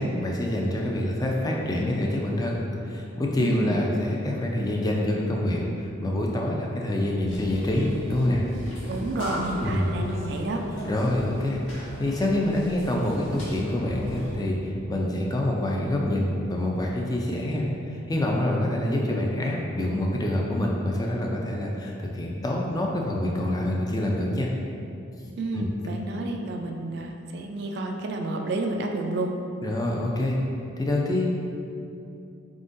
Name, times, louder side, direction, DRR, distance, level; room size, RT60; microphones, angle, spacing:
voice 1, 0.0-5.6 6.0-8.4 9.6-9.9 10.8-11.6 12.0-24.5 25.5-25.7 26.2-26.3 29.6-30.4 30.8-31.3, left 1 dB, 20° left, -1 dB, 0.3 m, -26 dB
voice 2, 3.4-3.8 8.8-10.6 25.4-29.3, right 2 dB, 55° right, 3 dB, 0.3 m, -30 dB
sound 1, 7.3-14.4, equal, 75° left, 1.2 m, -37 dB
4.3 x 3.7 x 2.6 m, 2.6 s
head